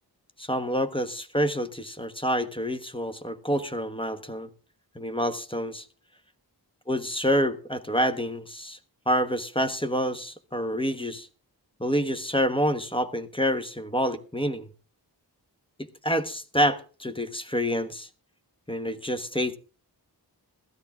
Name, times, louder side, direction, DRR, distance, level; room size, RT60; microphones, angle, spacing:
voice 1, 0.4-4.5 4.9-5.9 6.9-8.8 9.1-11.3 11.8-14.7 15.8-18.1 18.7-19.6, equal, 10° left, 1.2 m, -27 dB
16.0 x 13.0 x 3.6 m
wide cardioid pair, 65°, 42 cm